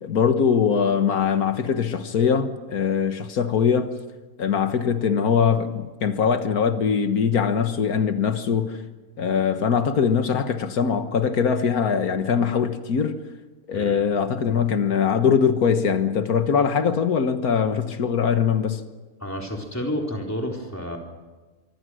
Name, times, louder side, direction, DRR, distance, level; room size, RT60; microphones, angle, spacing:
voice 1, 0.0-3.9 4.4-8.8 9.2-13.2 13.7-18.8, left 7 dB, 90° left, 1.8 m, -22 dB
voice 2, 19.2-21.0, equal, 10° left, 3.9 m, -30 dB
25.0 x 25.0 x 6.4 m
omnidirectional pair, 1.5 m